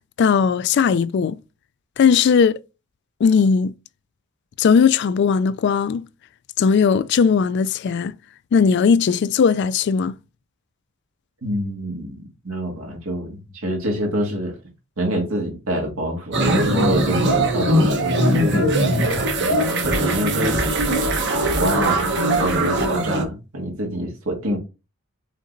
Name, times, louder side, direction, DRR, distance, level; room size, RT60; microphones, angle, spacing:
voice 1, 0.2-1.4 2.0-2.6 3.2-3.7 4.6-6.1 6.6-8.1 8.5-10.2, left 6 dB, 55° left, 0.3 m, -18 dB
voice 2, 11.4-14.6 15.0-20.6 21.4-22.1 22.4-24.6, right 1 dB, 85° right, 1.9 m, -26 dB
sound 1, 16.3-23.2, right 1 dB, 55° right, 1.0 m, -20 dB
5.2 x 3.8 x 2.6 m
head